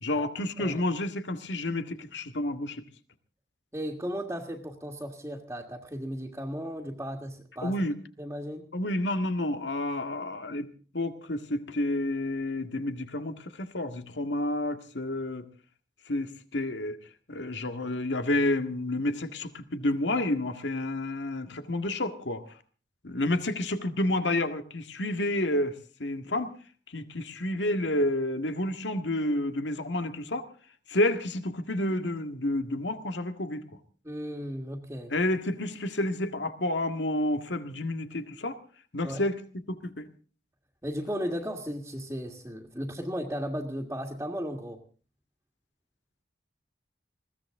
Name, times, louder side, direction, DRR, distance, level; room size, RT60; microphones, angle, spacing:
voice 1, 0.0-2.8 7.6-8.0 8.7-10.7 10.9-15.5 16.1-17.0 17.3-22.4 23.0-26.5 26.9-30.5 30.9-33.7 35.1-38.6 38.9-39.4 39.7-40.1, left 1 dB, 85° left, 8 dB, 1.8 m, -30 dB
voice 2, 3.7-7.7 8.2-8.7 34.0-35.1 39.0-39.2 40.8-44.8, equal, 15° right, -1 dB, 1.8 m, -35 dB
21.5 x 16.5 x 3.7 m, 0.39 s
head